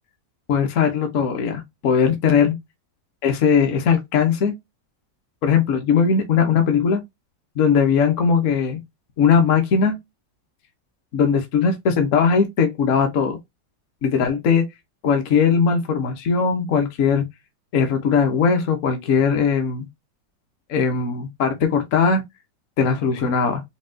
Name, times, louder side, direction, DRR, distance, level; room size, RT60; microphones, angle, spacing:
voice 1, 0.5-2.5 3.2-4.5 5.4-7.0 7.6-8.8 9.2-10.0 11.1-13.4 14.0-14.6 15.0-17.2 17.7-19.9 20.7-22.2 22.8-23.6, left 6 dB, 55° left, 1.0 m, -19 dB
5.3 x 2.3 x 2.6 m
omnidirectional pair, 2.0 m